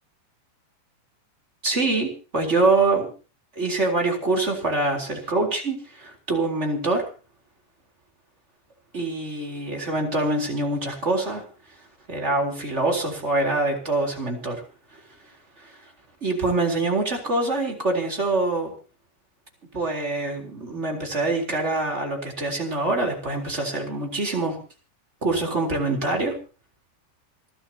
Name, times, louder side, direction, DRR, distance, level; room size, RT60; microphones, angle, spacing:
voice 1, 1.6-3.1 3.6-7.1 8.9-11.4 12.1-14.6 15.6-15.7 16.2-18.7 19.7-24.6 25.2-26.4, right 2 dB, 20° right, 1 dB, 4.0 m, -24 dB
29.0 x 12.5 x 2.9 m, 0.36 s
omnidirectional pair, 3.7 m